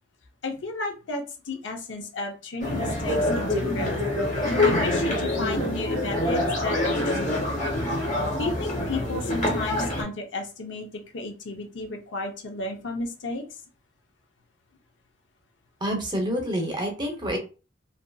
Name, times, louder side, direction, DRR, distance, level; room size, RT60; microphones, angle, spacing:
voice 1, 0.4-4.0 4.6-7.6 8.4-10.9 11.1-13.4, left 2 dB, 75° left, 3 dB, 0.6 m, -33 dB
sound 1, 2.6-10.0, left 1 dB, 40° left, 0.9 m, -25 dB
voice 2, 15.8-17.4, equal, 25° right, 2 dB, 0.7 m, -27 dB
2.7 x 2.5 x 2.2 m, 0.34 s
head